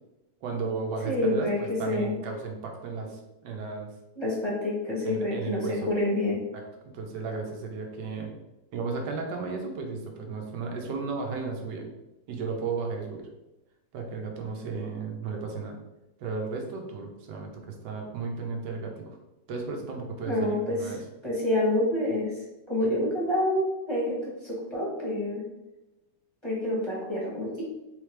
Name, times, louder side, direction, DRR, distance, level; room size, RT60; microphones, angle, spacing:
voice 1, 0.4-3.9 5.0-5.9 6.9-8.3 8.7-11.9 12.3-13.3 13.9-15.8 16.2-19.0 19.5-21.0, right 4 dB, 85° right, 2 dB, 1.3 m, -34 dB
voice 2, 1.0-2.1 4.2-6.4 20.2-21.0 21.2-25.4 26.4-27.6, left 1 dB, 20° left, -6 dB, 0.8 m, -28 dB
3.7 x 3.3 x 3.2 m, 0.99 s
omnidirectional pair, 1.8 m